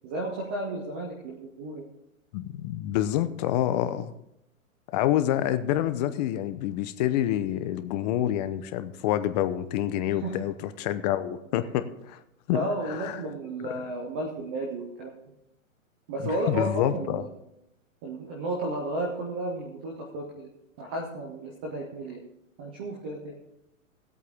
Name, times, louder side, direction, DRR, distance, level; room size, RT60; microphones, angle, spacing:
voice 1, 0.0-1.8 10.1-10.4 12.5-15.1 16.1-17.3 18.0-20.5 20.8-22.2 22.6-23.3, right 1 dB, 10° right, 0 dB, 0.3 m, -33 dB
voice 2, 2.3-4.1 4.9-12.2 12.5-13.2 13.6-13.7 16.2-17.3, left 12 dB, 30° left, 11 dB, 0.7 m, -27 dB
18.5 x 8.3 x 3.5 m, 0.85 s
hypercardioid pair, 140°, 41 cm